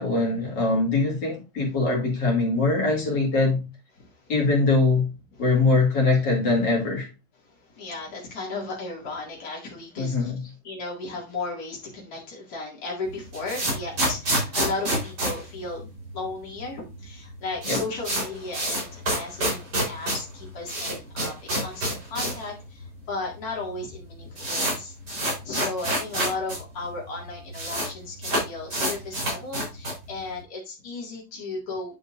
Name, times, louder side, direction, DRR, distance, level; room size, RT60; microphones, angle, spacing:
voice 1, 0.0-3.6 4.3-5.1 5.4-7.1 10.0-10.4 17.7-17.8, left 3 dB, 80° left, 3.0 m, -22 dB
voice 2, 4.0-4.3 7.4-10.3 10.6-32.0, left 3 dB, 60° left, 2.6 m, -35 dB
sound 1, 13.1-16.3 16.6-16.7 16.9-17.0 17.3-22.5 22.8-22.9 23.6-23.7 23.9-26.6 26.9-27.0 27.1-27.9 28.2-30.1, right 1 dB, 70° right, 4.5 m, -27 dB
9.9 x 5.5 x 2.5 m
omnidirectional pair, 1.9 m